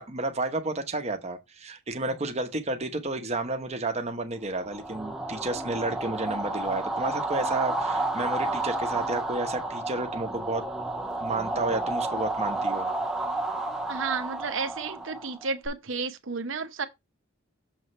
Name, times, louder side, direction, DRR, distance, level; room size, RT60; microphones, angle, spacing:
voice 1, 0.0-10.7 11.2-12.9, right 2 dB, 30° right, 1.0 m, -31 dB
sound 1, 4.5-15.7, right 2 dB, ahead, 0.7 m, -31 dB
voice 2, 13.9-16.9, right 4 dB, 65° right, 1.0 m, -32 dB
7.0 x 3.2 x 5.4 m
head